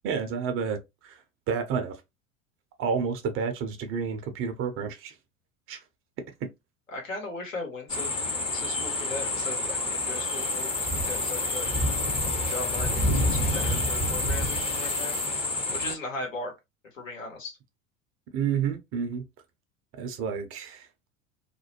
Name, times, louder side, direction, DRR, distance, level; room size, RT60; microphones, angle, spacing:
voice 1, 0.0-1.1 1.5-2.0 2.8-5.1 5.7-5.8 18.3-19.2 20.0-20.9, right 6 dB, 35° right, 0.6 m, -30 dB
voice 2, 6.9-8.1 8.5-11.7 12.3-15.2 15.7-16.5 16.9-17.5, left 3 dB, 80° left, 1.2 m, -38 dB
sound 1, 7.9-16.0, left 2 dB, 15° left, 0.7 m, -28 dB
2.5 x 2.1 x 2.8 m
figure-of-eight pair, 75°, 39 cm